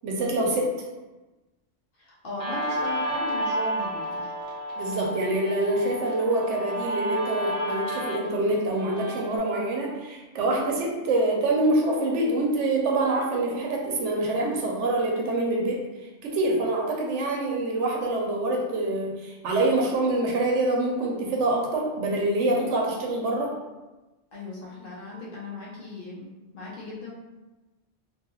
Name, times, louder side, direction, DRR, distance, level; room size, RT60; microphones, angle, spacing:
voice 1, 0.0-0.7 4.8-15.8 16.2-23.6, right 2 dB, 75° right, -1 dB, 0.9 m, -25 dB
voice 2, 2.0-4.4 24.3-27.1, left 1 dB, 55° left, -5 dB, 0.7 m, -38 dB
Guitar, 2.4-9.4, right 1 dB, 45° right, 0.8 m, -31 dB
2.6 x 2.3 x 2.9 m, 1.1 s
omnidirectional pair, 1.2 m